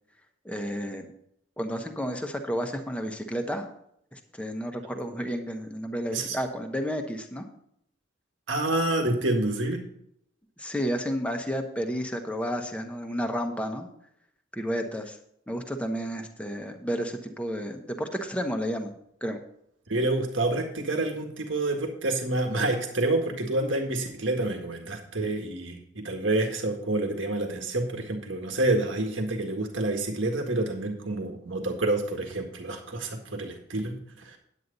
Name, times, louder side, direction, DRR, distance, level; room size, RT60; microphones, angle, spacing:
voice 1, 0.4-1.1 1.6-3.7 4.1-7.4 10.6-13.9 14.5-15.2 15.5-19.0 19.2-19.4, equal, 5° left, 4 dB, 1.0 m, -31 dB
voice 2, 8.5-9.8 19.9-34.4, right 2 dB, 90° right, 3 dB, 1.8 m, -28 dB
9.6 x 9.3 x 4.0 m, 0.72 s
head